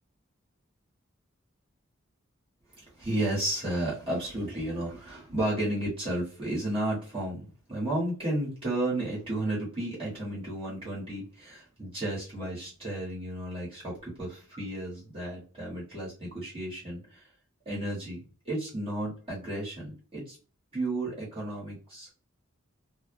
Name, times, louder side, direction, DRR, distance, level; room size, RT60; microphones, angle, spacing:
voice 1, 2.7-17.2 17.6-20.4 20.7-22.1, right 1 dB, 25° right, -7 dB, 1.1 m, -33 dB
2.5 x 2.0 x 2.5 m, 0.37 s
head